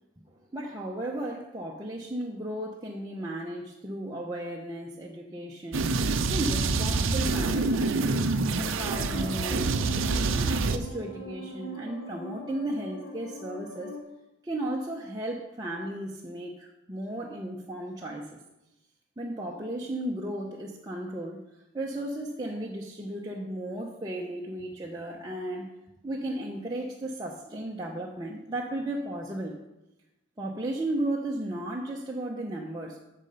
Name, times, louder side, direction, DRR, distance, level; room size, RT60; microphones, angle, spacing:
voice 1, 0.3-5.9 6.1-8.1 8.6-14.0 14.4-18.4 19.2-25.7 26.0-29.6 30.4-33.0, right 1 dB, 20° right, -3 dB, 0.7 m, -35 dB
sound 1, 5.7-10.8, right 3 dB, 65° right, 0.6 m, -26 dB
sound 2, 8.8-14.0, equal, 55° left, 1.7 m, -42 dB
8.9 x 6.5 x 5.4 m, 0.95 s
head